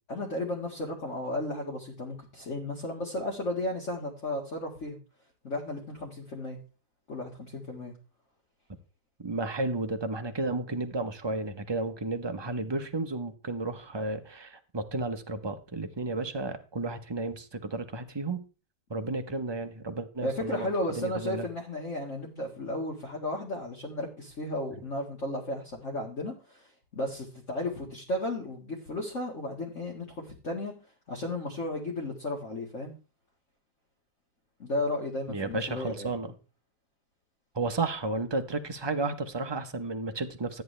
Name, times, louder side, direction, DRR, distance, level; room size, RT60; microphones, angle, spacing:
voice 1, 0.1-5.0 5.4-6.6 7.1-7.9 20.2-30.7 31.1-32.9 34.6-36.2, left 1 dB, 45° left, -2 dB, 2.2 m, -34 dB
voice 2, 9.2-18.4 18.9-20.7 20.9-21.5 35.3-36.3 37.5-40.6, right 2 dB, 20° right, 6 dB, 0.7 m, -32 dB
13.5 x 9.3 x 3.3 m, 0.34 s
omnidirectional pair, 1.8 m